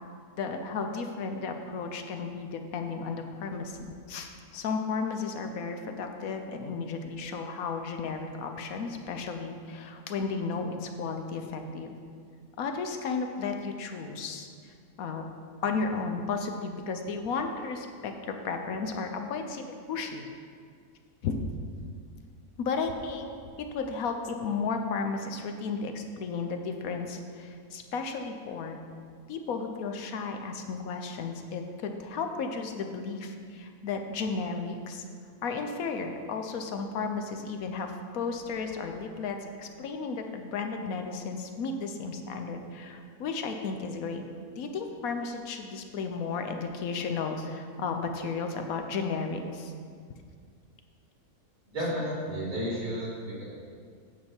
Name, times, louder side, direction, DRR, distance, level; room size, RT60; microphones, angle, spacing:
voice 1, 0.4-3.8 4.1-11.9 12.6-15.3 15.6-20.2 21.2-21.4 22.6-23.3 23.6-28.8 29.3-35.0 35.4-44.3 44.6-49.7 51.8-51.9, left 4 dB, 75° left, 5 dB, 1.2 m, -34 dB
voice 2, 51.7-53.4, equal, 65° right, -6 dB, 2.9 m, -32 dB
8.6 x 7.3 x 4.4 m, 2.1 s
omnidirectional pair, 1.5 m